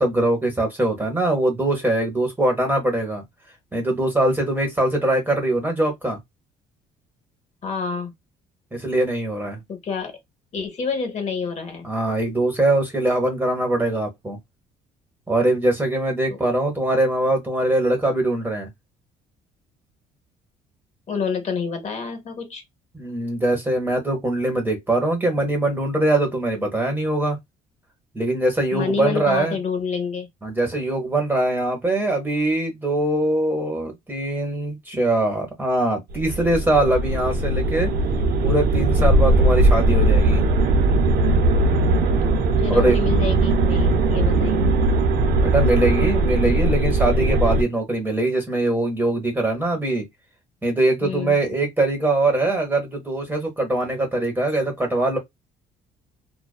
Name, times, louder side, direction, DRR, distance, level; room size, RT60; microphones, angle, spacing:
voice 1, 0.0-3.2 3.7-6.2 8.7-9.6 11.8-14.4 15.3-18.7 22.9-27.4 28.1-29.6 30.4-37.9 38.4-40.4 42.7-43.0 45.4-50.1 50.6-55.2, right 2 dB, 10° right, 0.9 m, -22 dB
voice 2, 7.6-8.1 9.7-10.2 10.5-11.9 16.3-16.4 21.1-22.6 28.7-30.3 42.6-44.7 51.0-51.4, left 5 dB, 40° left, 1.0 m, -28 dB
sound 1, 36.1-47.6, right 2 dB, 65° right, 0.6 m, -19 dB
2.4 x 2.2 x 2.3 m
cardioid pair, 110°, 17 cm